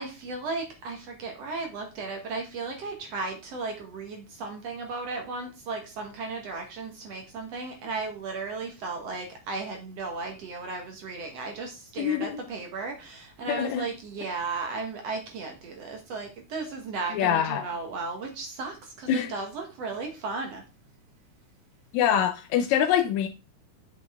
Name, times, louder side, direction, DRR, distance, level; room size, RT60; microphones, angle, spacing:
voice 1, 0.0-20.6, right 3 dB, 60° right, 2.1 m, -35 dB
voice 2, 12.0-12.4 13.5-13.8 17.1-17.6 19.1-19.3 21.9-23.3, left 9 dB, 75° left, 1.8 m, -24 dB
8.1 x 6.5 x 3.5 m
omnidirectional pair, 3.6 m